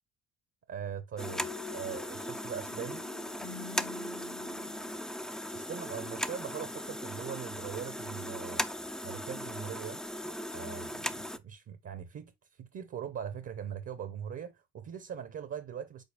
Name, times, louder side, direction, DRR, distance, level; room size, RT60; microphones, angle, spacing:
voice 1, 0.7-3.0 5.5-8.7 9.0-10.0 10.5-16.0, right 8 dB, 40° right, 0.8 m, -41 dB
sound 1, 1.2-5.9, left 9 dB, 75° left, 1.5 m, -49 dB
sound 2, 1.2-11.4, equal, ahead, 0.4 m, -38 dB
5.3 x 4.0 x 2.4 m
cardioid pair, 90°, 37 cm